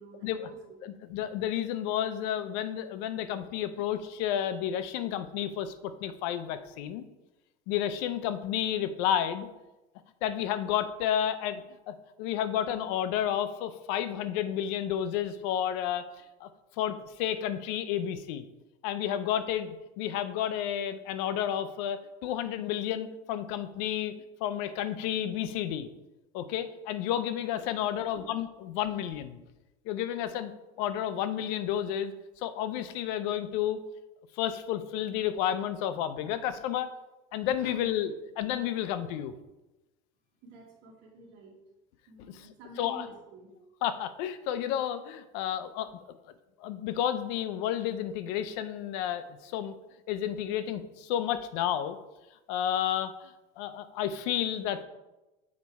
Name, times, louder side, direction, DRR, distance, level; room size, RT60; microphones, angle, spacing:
voice 1, 0.0-0.8 28.0-28.2 37.6-37.8 40.4-41.6 42.1-43.5, right 2 dB, 60° right, 0 dB, 1.9 m, -50 dB
voice 2, 0.8-7.1 7.7-9.5 10.2-16.0 16.4-16.5 16.8-18.4 18.8-24.1 24.4-25.9 26.3-29.4 29.9-30.5 30.8-32.1 32.4-33.8 34.4-36.9 37.3-39.3 42.2-42.5 42.8-43.1 43.8-45.9 46.6-49.7 50.1-52.0 52.5-54.8, left 10 dB, 75° left, 11 dB, 0.6 m, -31 dB
7.4 x 4.2 x 4.7 m, 1.0 s
cardioid pair, 150°, 21 cm